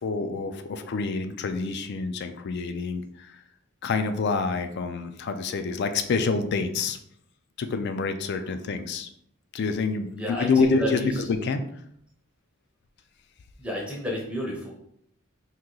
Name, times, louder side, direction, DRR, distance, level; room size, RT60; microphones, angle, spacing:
voice 1, 0.0-3.3 3.8-7.0 7.6-9.1 9.5-11.6, left 4 dB, 50° left, 8 dB, 0.3 m, -27 dB
voice 2, 10.2-11.2 13.6-14.7, equal, 5° right, -2 dB, 0.5 m, -31 dB
2.9 x 2.7 x 3.7 m, 0.72 s
head